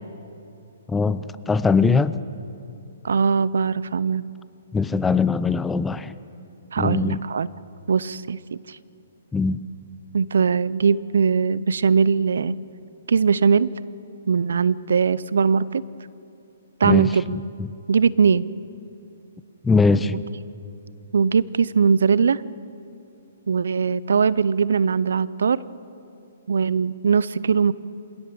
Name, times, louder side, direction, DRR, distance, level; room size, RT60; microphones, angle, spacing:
voice 1, 0.9-2.2 4.7-6.1 6.8-7.2 9.3-9.6 16.8-17.7 19.6-20.3, left 4 dB, 10° left, 15 dB, 0.6 m, -21 dB
voice 2, 3.0-4.2 6.7-7.5 7.9-8.8 10.1-12.6 13.1-13.7 14.3-15.8 16.8-17.4 17.9-18.4 21.1-22.4 23.5-25.6 26.5-27.7, right 5 dB, 75° right, 19 dB, 0.6 m, -20 dB
26.0 x 18.0 x 6.9 m, 2.7 s
hypercardioid pair, 135°, 0 cm